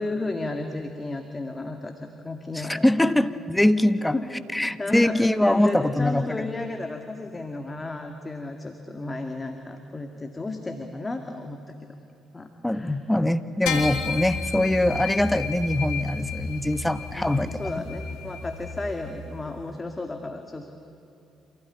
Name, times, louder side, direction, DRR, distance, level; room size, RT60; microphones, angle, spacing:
voice 1, 0.0-2.9 4.1-4.3 4.6-11.6 12.3-13.0 17.1-20.7, left 2 dB, 25° left, 5 dB, 2.2 m, -33 dB
voice 2, 2.5-4.1 4.5-6.5 12.6-17.5, left 1 dB, 10° left, 12 dB, 1.3 m, -23 dB
sound 1, 13.7-19.3, left 4 dB, 80° left, 2.9 m, -32 dB
27.5 x 17.0 x 9.9 m, 2.8 s
hypercardioid pair, 50°, 0 cm